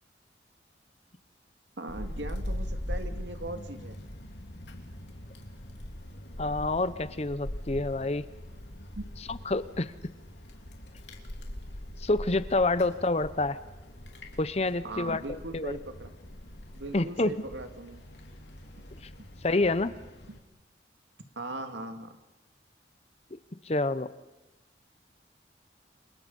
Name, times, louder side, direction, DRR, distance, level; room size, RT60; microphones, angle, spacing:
voice 1, 1.8-4.0 9.0-9.1 14.8-16.1 16.7-18.0 21.4-22.2, right 2 dB, 85° right, 6 dB, 2.2 m, -39 dB
Wind, 1.9-20.4, left 1 dB, 75° left, 3.1 m, -41 dB
voice 2, 6.4-8.3 9.3-9.9 12.0-13.6 14.4-15.8 16.9-17.3 19.4-19.9 23.6-24.1, left 2 dB, 35° left, 14 dB, 0.8 m, -28 dB
29.5 x 25.5 x 5.4 m, 1.1 s
head